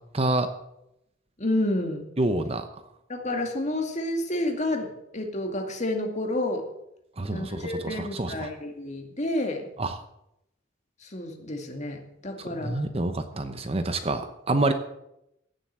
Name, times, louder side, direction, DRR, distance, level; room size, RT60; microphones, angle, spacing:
voice 1, 0.1-0.5 2.2-2.7 7.2-8.5 9.8-10.0 12.5-14.7, right 2 dB, 30° right, 9 dB, 0.9 m, -27 dB
voice 2, 1.4-2.1 3.1-4.9 5.1-6.6 7.3-9.7 11.0-12.8, left 1 dB, 35° left, 3 dB, 2.3 m, -29 dB
16.0 x 7.8 x 7.4 m, 0.82 s
head